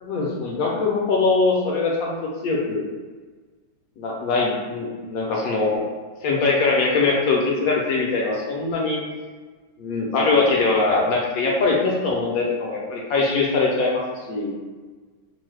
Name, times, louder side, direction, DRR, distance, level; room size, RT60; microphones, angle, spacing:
voice 1, 0.0-2.2 2.4-2.9 4.0-5.8 6.2-9.0 9.8-14.6, left 3 dB, 70° left, -2 dB, 0.9 m, -22 dB
3.0 x 2.0 x 3.2 m, 1.4 s
omnidirectional pair, 1.9 m